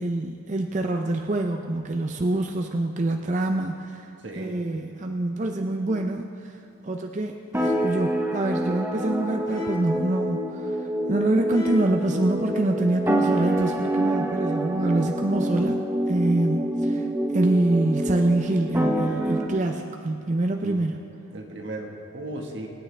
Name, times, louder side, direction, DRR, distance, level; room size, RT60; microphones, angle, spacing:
voice 1, 0.0-4.1 4.4-6.5 6.8-15.8 16.1-17.1 17.3-21.0, right 2 dB, 35° right, 4 dB, 0.5 m, -25 dB
voice 2, 4.2-4.5 20.6-20.8 21.3-22.7, right 2 dB, 55° right, 1 dB, 1.5 m, -36 dB
sound 1, 5.9-6.2 7.5-8.1 9.5-10.1 11.5-12.1, left 1 dB, 15° left, 1.7 m, -36 dB
sound 2, 7.5-19.5, right 1 dB, 10° right, 0.9 m, -27 dB
26.0 x 9.1 x 3.3 m, 2.7 s
head